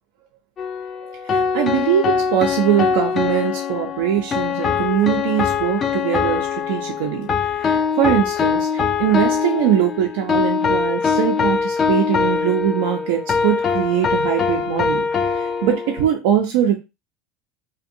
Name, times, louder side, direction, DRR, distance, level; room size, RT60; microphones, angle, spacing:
sound 1, 0.6-16.1, left 6 dB, 35° left, 0.4 m, -22 dB
voice 1, 1.1-16.8, right 10 dB, 75° right, 1 dB, 0.5 m, -22 dB
2.5 x 2.2 x 2.6 m, 0.25 s
supercardioid pair, 100°, 0 cm